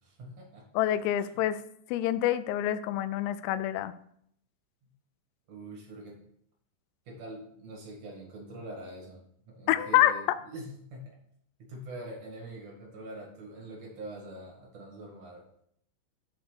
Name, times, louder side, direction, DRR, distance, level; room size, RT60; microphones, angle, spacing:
voice 1, 0.0-0.7 1.2-1.4 4.8-4.9 5.5-6.3 7.1-9.2 9.5-11.2 11.7-15.4, right 1 dB, 60° right, -2 dB, 1.8 m, -44 dB
voice 2, 0.8-1.6 1.9-3.9 9.7-10.2, left 13 dB, 90° left, 13 dB, 3.3 m, -26 dB
8.1 x 4.4 x 6.6 m, 0.68 s
omnidirectional pair, 5.9 m